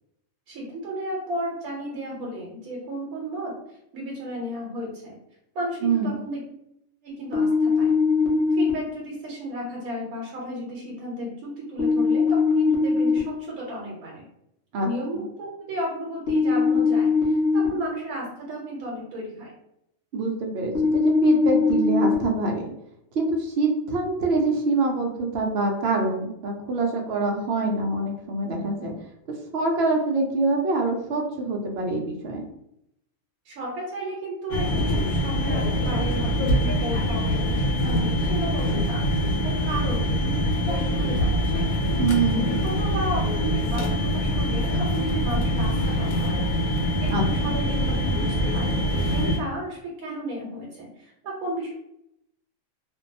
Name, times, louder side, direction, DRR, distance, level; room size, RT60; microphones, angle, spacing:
voice 1, 0.5-3.5 3.9-5.2 5.5-6.4 7.0-7.9 8.5-14.2 14.8-19.5 33.4-41.7 42.3-46.4 46.8-51.7, right 1 dB, 90° right, -3 dB, 1.1 m, -33 dB
voice 2, 5.8-6.2 14.7-14.9 20.1-22.7 23.1-28.9 29.5-32.5 42.0-42.6 47.1-47.5, right 3 dB, 65° right, 2 dB, 0.7 m, -25 dB
sound 1, 7.3-8.7 11.8-13.2 16.3-17.7 20.8-22.1, left 4 dB, 60° left, 0.9 m, -21 dB
sound 2, 34.5-49.4, equal, 85° left, 1.1 m, -24 dB
2.6 x 2.2 x 2.6 m, 0.78 s
omnidirectional pair, 1.5 m